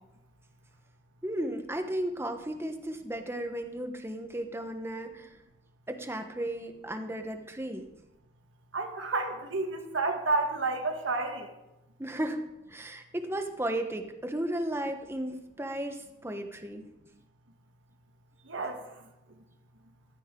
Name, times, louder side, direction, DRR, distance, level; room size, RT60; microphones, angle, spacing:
voice 1, 1.2-5.4 5.9-7.9 12.0-12.4 12.7-16.8, right 1 dB, 15° right, 6 dB, 1.1 m, -34 dB
voice 2, 8.7-11.5 18.5-18.8, right 3 dB, 90° right, 4 dB, 1.5 m, -30 dB
14.5 x 13.5 x 3.8 m, 0.96 s
head